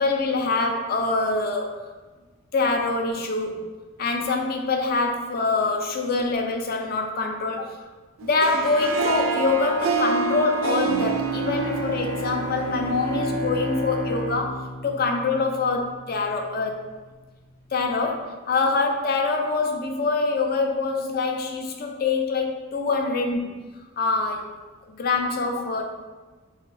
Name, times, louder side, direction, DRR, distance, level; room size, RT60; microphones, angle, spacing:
voice 1, 0.0-1.9 2.5-3.6 4.0-7.8 8.2-16.9 17.7-23.6 24.0-24.5 24.9-25.9, left 3 dB, 45° left, 3 dB, 0.5 m, -25 dB
Harp, 8.2-13.4, right 5 dB, 85° right, 0.4 m, -27 dB
Bowed string instrument, 10.8-16.1, left 1 dB, 20° left, 0.8 m, -32 dB
4.6 x 2.7 x 3.3 m, 1.3 s
head